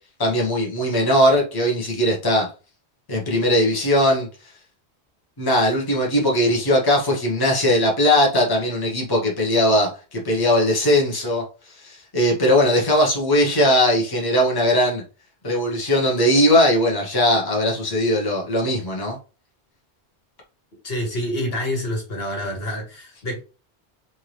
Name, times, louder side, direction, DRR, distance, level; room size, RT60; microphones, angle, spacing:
voice 1, 0.2-2.5 3.1-4.3 5.4-11.4 11.7-15.0 15.4-19.2, equal, 20° left, 1.0 m, -19 dB
voice 2, 20.8-23.4, equal, 60° left, 1.6 m, -27 dB
4.5 x 2.7 x 3.2 m
omnidirectional pair, 1.1 m